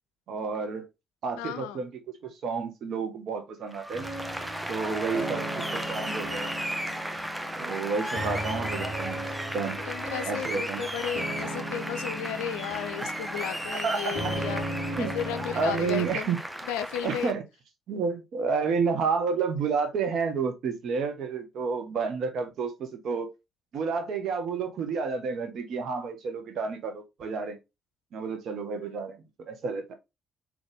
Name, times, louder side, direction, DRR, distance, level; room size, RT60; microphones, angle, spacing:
voice 1, 0.3-0.8 1.2-1.9 2.2-4.0 4.7-6.5 7.5-9.3 9.5-9.8 10.3-10.9 13.7-14.1 14.9-15.1 15.5-16.4 17.0-17.4 17.9-23.3 23.7-27.6 28.1-29.2 29.5-29.9, right 5 dB, 65° right, 1.2 m, -30 dB
voice 2, 1.4-1.8 9.9-14.6 15.0-17.3 28.8-29.0, left 10 dB, 80° left, 0.4 m, -34 dB
Applause, 3.7-17.3, equal, 10° right, 0.8 m, -35 dB
sound 1, 3.9-16.1, right 1 dB, 90° right, 1.9 m, -37 dB
4.0 x 3.3 x 3.4 m
hypercardioid pair, 50°, 0 cm